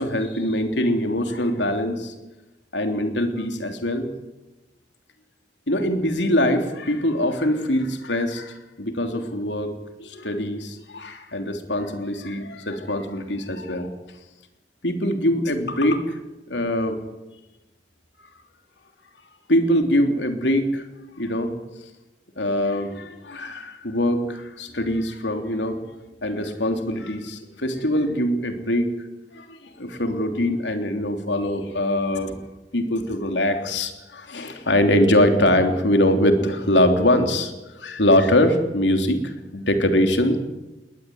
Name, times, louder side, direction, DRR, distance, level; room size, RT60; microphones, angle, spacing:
voice 1, 0.0-2.1 2.7-4.1 5.7-13.9 14.8-16.2 16.5-17.0 19.5-20.8 21.2-21.5 22.4-25.8 26.2-28.9 29.3-32.3 32.7-40.4, left 1 dB, 85° left, 6 dB, 3.2 m, -23 dB
20.0 x 20.0 x 9.5 m, 1.0 s
head